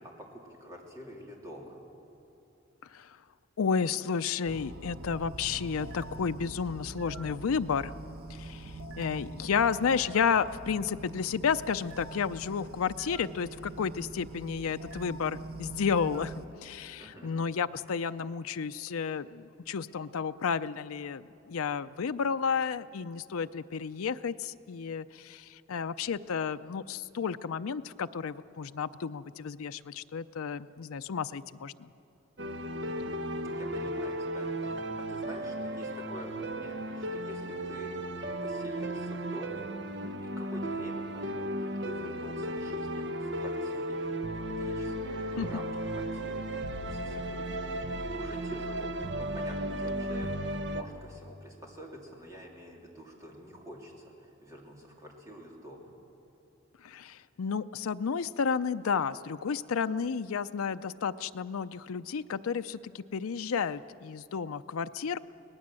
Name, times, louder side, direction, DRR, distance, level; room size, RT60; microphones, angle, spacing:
voice 1, 0.0-1.8 17.0-17.3 33.0-38.1 38.4-39.7 40.4-44.0 44.5-46.5 46.8-55.9, equal, 15° right, -1 dB, 3.0 m, -47 dB
voice 2, 2.8-3.2 3.6-7.9 8.3-31.9 45.4-45.5 56.8-65.2, left 6 dB, 85° left, 11 dB, 0.5 m, -32 dB
sound 1, 4.4-16.5, right 2 dB, 85° right, 1.1 m, -44 dB
sound 2, 32.4-50.8, right 1 dB, 55° right, 1.0 m, -35 dB
24.5 x 18.5 x 7.6 m, 2.9 s
head